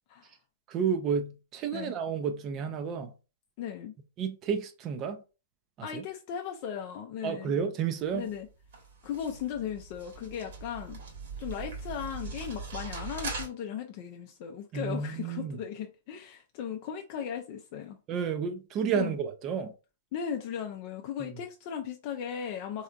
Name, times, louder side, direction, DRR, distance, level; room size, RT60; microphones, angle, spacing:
voice 1, 0.7-3.1 4.2-5.2 5.8-6.0 7.2-8.3 14.7-15.6 18.1-19.7, right 6 dB, 30° right, 0.5 m, -31 dB
voice 2, 3.6-3.9 5.8-7.5 8.1-8.5 9.0-11.0 11.4-18.0 18.9-19.2 20.1-22.8, left 8 dB, 45° left, 0.4 m, -37 dB
sound 1, 8.0-13.5, right 4 dB, 60° right, 1.4 m, -41 dB
3.3 x 2.7 x 2.4 m
figure-of-eight pair, 115°, 0 cm